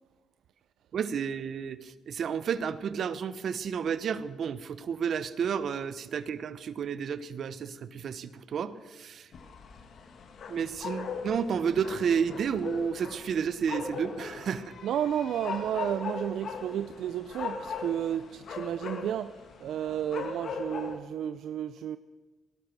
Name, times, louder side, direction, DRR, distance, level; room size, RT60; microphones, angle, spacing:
voice 1, 0.9-9.3 10.5-14.7, right 7 dB, 60° right, 15 dB, 0.9 m, -31 dB
sound 1, 9.3-21.0, left 5 dB, 60° left, 1.6 m, -39 dB
voice 2, 14.8-22.0, right 10 dB, 75° right, 12 dB, 0.4 m, -32 dB
18.5 x 12.0 x 6.2 m, 1.3 s
cardioid pair, 90°, 0 cm